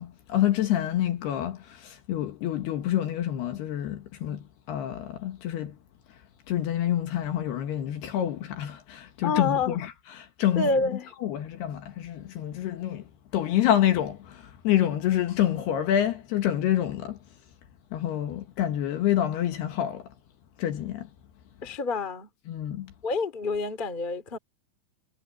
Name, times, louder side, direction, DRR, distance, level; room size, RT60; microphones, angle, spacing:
voice 1, 0.0-5.8 6.5-10.8 11.2-17.2 17.9-20.1 20.6-21.1 22.5-22.9, left 11 dB, 65° left, 2.9 m, -27 dB
voice 2, 9.2-9.8 10.5-11.1 21.6-22.3 23.0-24.4, left 3 dB, 30° left, 0.8 m, -28 dB
omnidirectional pair, 5.9 m